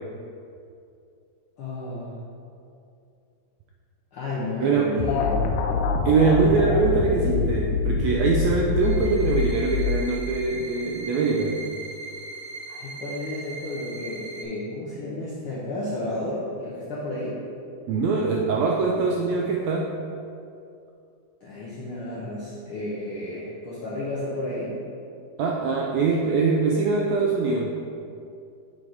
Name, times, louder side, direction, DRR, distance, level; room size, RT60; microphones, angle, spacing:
voice 1, 1.6-2.2 4.1-5.6 12.7-17.4 21.4-24.8, left 1 dB, 70° left, -7 dB, 1.3 m, -32 dB
voice 2, 4.6-5.0 6.0-11.6 17.9-19.9 25.4-27.8, right 4 dB, 80° right, -1 dB, 1.6 m, -23 dB
sound 1, 5.0-10.4, left 4 dB, 85° left, 2.1 m, -25 dB
string section, 8.8-14.4, right 3 dB, 50° right, 1.3 m, -39 dB
7.5 x 4.8 x 4.0 m, 2.5 s
omnidirectional pair, 3.6 m